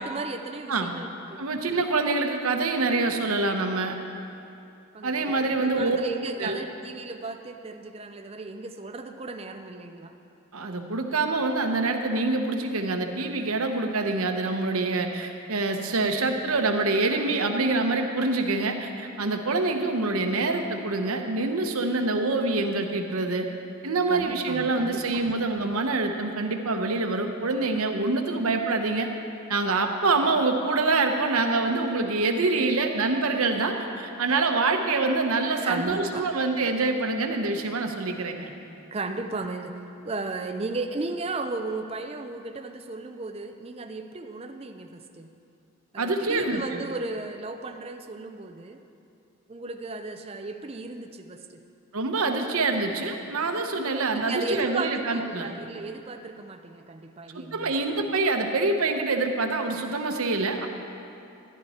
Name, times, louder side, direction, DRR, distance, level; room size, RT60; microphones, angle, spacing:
voice 1, 0.0-1.4 4.9-10.1 14.7-14.9 24.1-25.4 35.6-36.2 38.9-45.3 45.9-48.8 49.5-51.6 54.1-57.7, right 3 dB, 25° right, 5 dB, 0.5 m, -35 dB
voice 2, 1.4-3.9 5.0-6.0 6.4-6.6 10.5-23.5 23.8-29.1 29.5-38.5 46.0-46.8 51.9-55.5 57.5-60.7, right 3 dB, 85° right, 5 dB, 0.9 m, -26 dB
13.5 x 11.0 x 4.3 m, 2.7 s
head